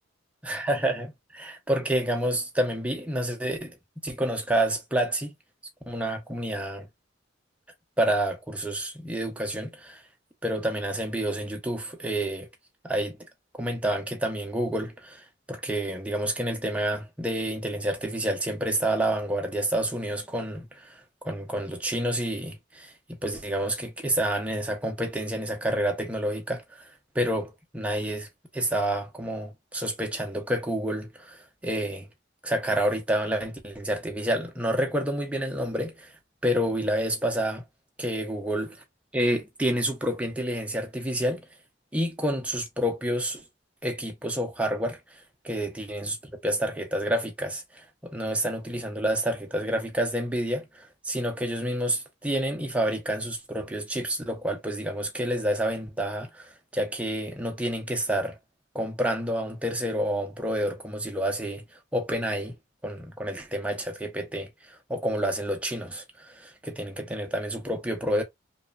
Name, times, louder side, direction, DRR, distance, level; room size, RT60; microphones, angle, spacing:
voice 1, 0.4-3.8 4.0-5.3 5.9-6.9 8.0-10.0 10.4-12.5 12.8-13.2 13.6-22.9 23.2-26.9 27.1-28.3 28.5-32.1 32.4-36.1 36.4-37.6 38.0-38.7 39.1-41.5 41.9-43.4 43.8-46.2 46.4-58.4 58.7-61.6 61.9-62.6 62.8-68.2, right 1 dB, 5° right, 0.5 m, -29 dB
3.0 x 2.1 x 2.3 m
head